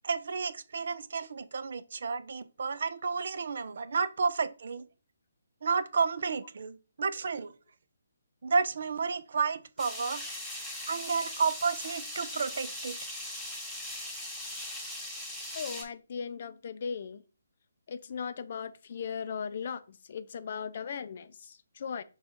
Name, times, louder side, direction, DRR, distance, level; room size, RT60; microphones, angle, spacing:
voice 1, 0.0-4.9 5.6-7.5 8.4-10.2 10.9-13.0, right 5 dB, 60° right, 0.4 m, -31 dB
sound 1, 9.8-15.8, left 1 dB, 5° left, 1.3 m, -39 dB
voice 2, 15.5-17.2 17.9-22.0, left 6 dB, 50° left, 0.4 m, -38 dB
5.5 x 2.3 x 4.2 m
figure-of-eight pair, 145°, 0 cm